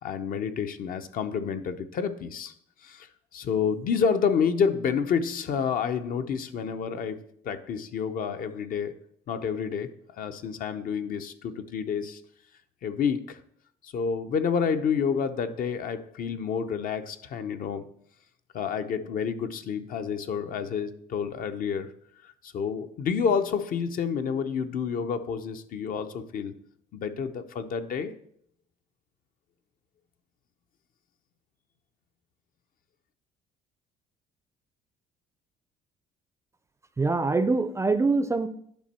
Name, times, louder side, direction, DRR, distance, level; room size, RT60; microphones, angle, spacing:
voice 1, 0.0-2.5 2.8-9.0 9.3-12.2 12.8-13.4 13.8-17.9 18.5-21.9 22.2-26.5 26.9-28.1, left 6 dB, 55° left, 9 dB, 0.7 m, -29 dB
voice 2, 37.0-38.5, right 3 dB, 15° right, 12 dB, 0.5 m, -24 dB
10.5 x 5.3 x 4.3 m, 0.66 s
cardioid pair, 110°, 17 cm